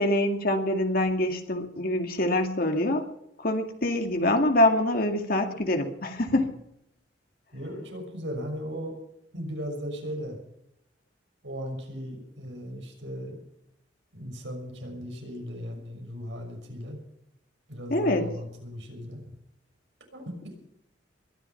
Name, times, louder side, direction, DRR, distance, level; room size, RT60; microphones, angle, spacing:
voice 1, 0.0-3.1 3.4-6.5 17.9-18.3, left 1 dB, 55° left, 4 dB, 2.3 m, -25 dB
voice 2, 7.5-9.0 9.3-10.4 11.4-13.4 14.1-17.0 17.7-19.2 20.1-20.3, equal, 80° right, 3 dB, 6.2 m, -37 dB
22.0 x 11.5 x 5.8 m, 0.79 s
head